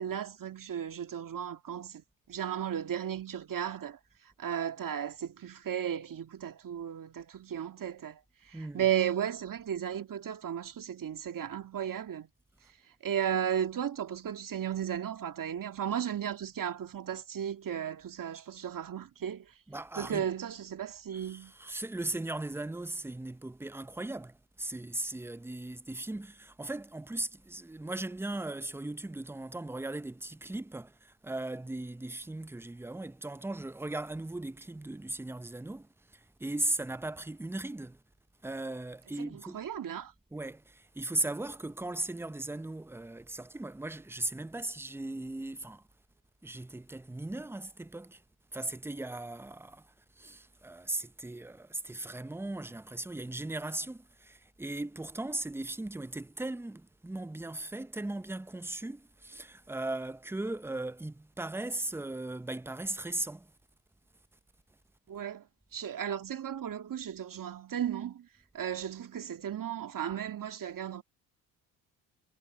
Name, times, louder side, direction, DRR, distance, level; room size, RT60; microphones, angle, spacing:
voice 1, 0.0-4.0 4.4-12.3 13.0-19.5 20.0-21.5 39.2-40.1 65.1-65.5 65.7-68.3 68.5-71.0, right 9 dB, 50° right, 2.2 m, -35 dB
voice 2, 8.5-8.8 19.7-20.2 21.1-38.0 38.4-39.6 40.3-45.8 46.4-48.2 48.5-49.9 50.2-63.5, right 2 dB, 5° right, 0.8 m, -38 dB
hypercardioid pair, 55°, 42 cm